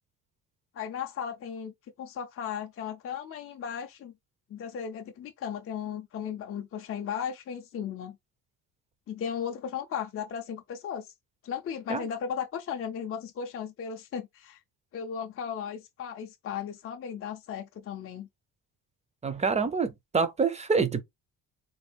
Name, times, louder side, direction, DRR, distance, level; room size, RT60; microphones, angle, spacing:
voice 1, 0.7-1.7 2.0-4.1 4.5-8.2 9.1-11.1 11.4-14.6 14.9-18.3, left 8 dB, 35° left, 0.5 m, -36 dB
voice 2, 19.2-21.0, right 5 dB, 20° right, 0.5 m, -26 dB
3.9 x 2.4 x 3.3 m
cardioid pair, 160°, 39 cm